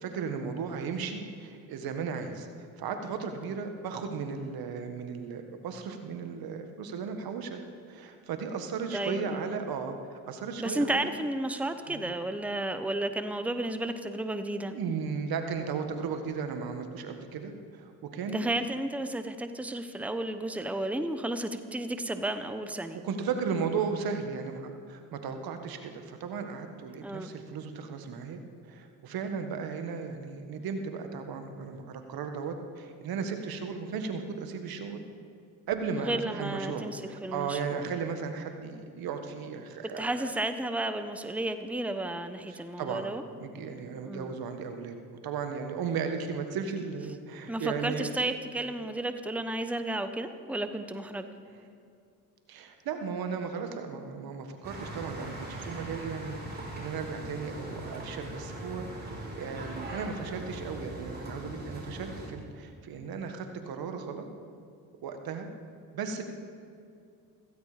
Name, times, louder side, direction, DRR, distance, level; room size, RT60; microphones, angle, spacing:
voice 1, 0.0-7.6 7.9-11.1 11.9-12.1 14.7-18.5 22.9-28.4 28.7-35.0 35.7-40.3 42.5-43.1 43.4-45.0 45.2-48.1 51.5-51.6 52.5-64.2 65.0-65.5 65.9-66.2, right 5 dB, 70° right, 6 dB, 1.7 m, -35 dB
voice 2, 8.9-9.5 10.6-14.7 18.3-23.0 27.0-27.3 36.1-37.9 40.0-43.2 44.0-44.4 47.5-51.3, right 1 dB, 5° right, 9 dB, 1.0 m, -33 dB
sound 1, 54.6-62.3, right 1 dB, 25° right, 5.1 m, -40 dB
16.0 x 15.5 x 5.1 m, 2.4 s
supercardioid pair, 70°, 38 cm